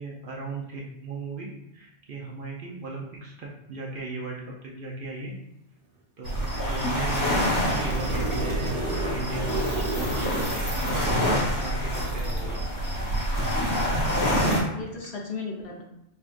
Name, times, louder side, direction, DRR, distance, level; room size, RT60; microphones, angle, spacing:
voice 1, 0.0-5.3 6.2-8.8 9.1-10.5 10.7-12.6, right 2 dB, 55° right, -2 dB, 0.7 m, -36 dB
sound 1, 6.2-14.6, equal, 15° left, 1.0 m, -26 dB
voice 2, 7.4-7.9 14.3-15.8, left 4 dB, 65° left, -1 dB, 1.0 m, -36 dB
sound 2, 7.7-11.0 14.9-15.0, right 2 dB, 80° right, 1.3 m, -33 dB
5.6 x 2.3 x 2.5 m, 0.82 s
omnidirectional pair, 1.2 m